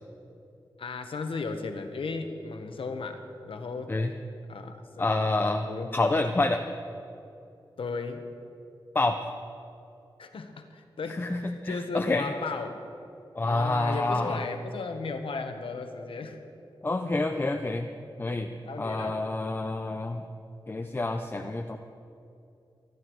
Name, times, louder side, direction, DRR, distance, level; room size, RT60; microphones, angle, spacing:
voice 1, 0.8-4.0 4.5-5.1 5.6-6.6 7.8-8.3 10.2-12.8 13.4-16.4 18.3-19.1, left 4 dB, 80° left, 6 dB, 1.3 m, -36 dB
voice 2, 5.0-5.7 5.9-6.6 8.9-9.2 11.2-12.3 13.3-14.4 16.8-17.9 18.2-18.5 18.8-20.2 20.7-21.8, left 2 dB, 25° left, 5 dB, 0.6 m, -28 dB
25.0 x 11.0 x 4.7 m, 2.7 s
wide cardioid pair, 125°, 9 cm